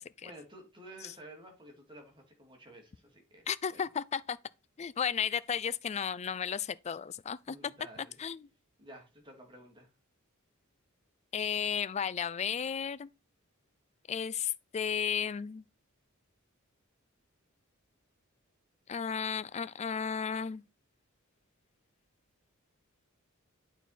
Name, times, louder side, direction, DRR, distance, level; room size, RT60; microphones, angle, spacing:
voice 1, 0.2-3.9 7.5-8.2 8.8-9.9, right 1 dB, 25° right, 2.6 m, -52 dB
voice 2, 3.5-4.4 4.8-7.6 8.2-8.5 11.3-13.1 14.1-15.6 18.9-20.6, left 7 dB, 30° left, 0.4 m, -33 dB
9.0 x 4.6 x 4.1 m
head